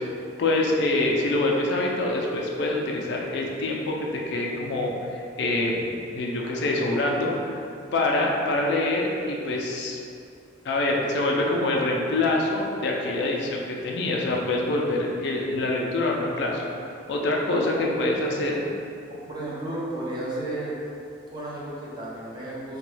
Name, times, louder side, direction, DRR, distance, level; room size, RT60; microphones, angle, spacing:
voice 1, 0.4-7.6 7.9-10.0 10.6-16.6 17.1-18.5, left 2 dB, 60° left, -1 dB, 0.3 m, -25 dB
voice 2, 17.5-17.8 19.3-20.7 21.3-22.8, right 1 dB, 20° right, -7 dB, 0.5 m, -33 dB
2.9 x 2.2 x 3.1 m, 2.5 s
head